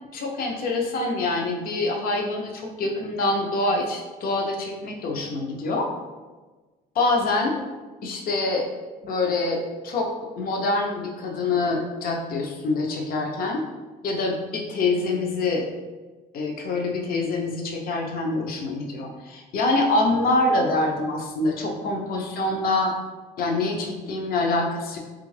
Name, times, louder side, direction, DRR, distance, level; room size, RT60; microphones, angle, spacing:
voice 1, 0.1-5.9 6.9-7.6 8.0-8.7 9.0-10.1 10.4-13.6 14.0-15.7 16.3-22.9 23.4-25.0, left 2 dB, 60° left, 1 dB, 0.7 m, -25 dB
3.5 x 2.4 x 3.2 m, 1.3 s
cardioid pair, 110°, 17 cm